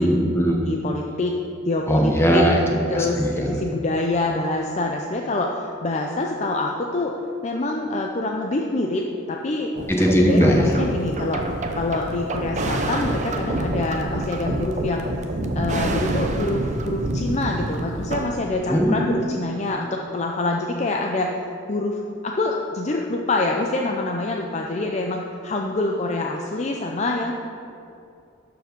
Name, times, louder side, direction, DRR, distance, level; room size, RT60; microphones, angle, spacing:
voice 1, 0.0-0.6 1.9-2.6 2.9-3.6 9.9-10.7 18.7-19.4, equal, 10° left, 0 dB, 1.0 m, -19 dB
voice 2, 0.7-1.4 1.6-2.5 2.9-7.1 7.4-9.0 9.3-9.7 10.0-11.4 11.7-15.1 15.6-21.3 21.7-27.3, left 2 dB, 30° left, 1 dB, 0.5 m, -26 dB
sound 1, 9.8-18.3, right 2 dB, 35° right, 0.6 m, -27 dB
12.0 x 4.9 x 5.2 m, 2.6 s
head